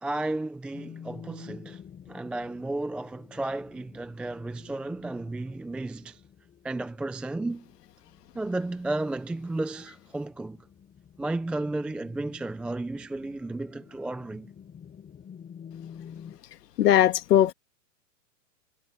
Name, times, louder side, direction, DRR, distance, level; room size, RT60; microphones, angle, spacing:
voice 1, 0.0-1.8 2.1-6.2 6.6-7.7 8.3-10.6 11.2-14.5, right 2 dB, ahead, 0.5 m, -33 dB
sound 1, 0.7-16.4, left 8 dB, 15° left, 3.6 m, -49 dB
voice 2, 16.8-17.5, left 11 dB, 70° left, 2.1 m, -19 dB
hypercardioid pair, 130°, 49 cm